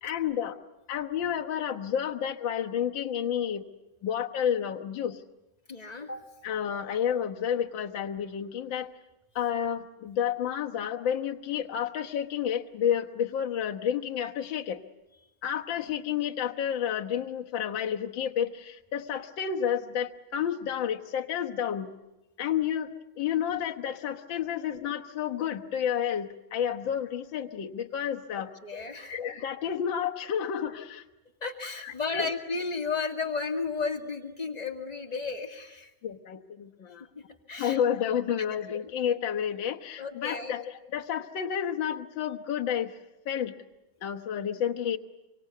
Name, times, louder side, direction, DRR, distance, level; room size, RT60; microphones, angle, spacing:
voice 1, 0.0-0.6 0.9-3.7 4.0-5.2 6.4-8.9 9.4-14.8 15.4-21.9 22.4-22.9 23.2-31.0 31.8-32.3 36.0-37.1 37.6-40.6 40.9-43.0 43.3-43.5 44.0-45.0, left 9 dB, 65° left, 4 dB, 2.0 m, -30 dB
voice 2, 5.7-6.2 28.6-29.1 31.4-35.9 37.5-37.9 40.0-40.5, left 4 dB, 20° left, 3 dB, 2.2 m, -33 dB
26.0 x 25.0 x 8.4 m, 0.97 s
omnidirectional pair, 2.3 m